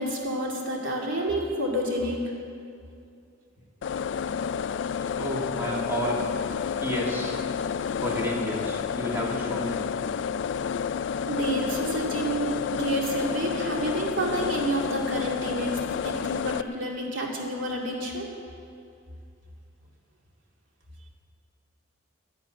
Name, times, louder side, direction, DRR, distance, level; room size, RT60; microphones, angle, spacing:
voice 1, 0.0-2.2 11.3-18.3, right 1 dB, 80° right, -1 dB, 2.5 m, -29 dB
sound 1, 3.8-16.6, left 7 dB, 65° left, 0.3 m, -30 dB
voice 2, 5.1-6.2 6.8-7.4 8.0-9.8, equal, 10° right, -3 dB, 2.3 m, -31 dB
12.0 x 11.0 x 8.9 m, 2.4 s
head